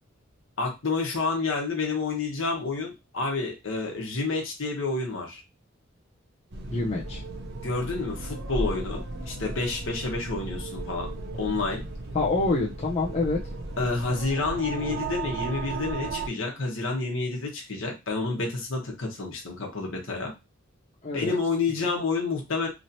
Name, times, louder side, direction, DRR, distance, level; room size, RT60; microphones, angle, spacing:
voice 1, 0.6-5.4 7.6-11.8 13.8-20.3 21.1-22.7, left 3 dB, 70° left, 0 dB, 1.0 m, -29 dB
sound 1, 6.5-16.3, right 2 dB, 50° right, 0.5 m, -35 dB
voice 2, 6.7-7.2 12.1-13.4 21.0-21.4, left 3 dB, 30° left, -3 dB, 0.5 m, -26 dB
3.1 x 2.8 x 2.6 m, 0.24 s
head